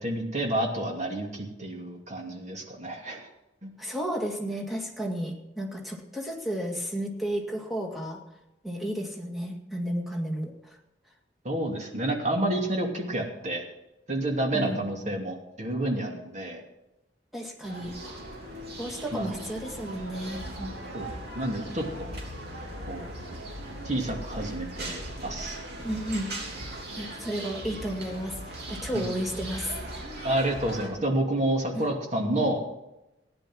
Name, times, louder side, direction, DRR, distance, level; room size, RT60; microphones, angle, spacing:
voice 1, 0.0-3.3 3.6-3.8 11.4-13.6 14.1-16.6 19.1-19.3 20.9-21.1 21.3-22.1 22.9-23.1 23.8-25.6 28.9-29.0 30.2-32.6, right 1 dB, 40° right, 1 dB, 2.6 m, -29 dB
voice 2, 3.8-8.2 8.6-10.8 14.5-14.9 17.3-18.2 18.8-20.8 25.8-26.3 27.0-30.0 31.8-31.9, equal, ahead, -1 dB, 2.1 m, -33 dB
sound 1, 17.6-30.9, right 1 dB, 60° right, 3.3 m, -40 dB
sound 2, 17.8-27.1, equal, 85° right, 3.2 m, -43 dB
15.0 x 10.5 x 6.2 m, 0.92 s
head